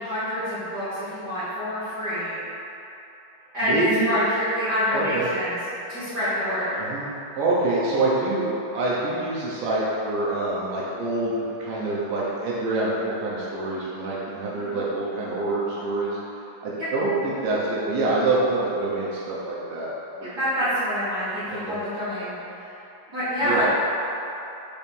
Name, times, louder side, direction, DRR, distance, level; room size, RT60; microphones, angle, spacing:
voice 1, 0.0-2.3 3.5-5.5 5.9-6.8 14.5-14.7 16.8-16.9 20.4-22.8 23.1-23.7, equal, 45° right, -13 dB, 1.3 m, -26 dB
voice 2, 3.6-4.2 4.9-5.3 6.8-7.1 7.3-8.5 8.7-16.2 16.6-19.9 20.2-20.4 21.5-21.8 23.4-23.7, right 2 dB, 75° right, -6 dB, 2.4 m, -26 dB
6.1 x 4.4 x 5.3 m, 3.0 s
omnidirectional pair, 4.0 m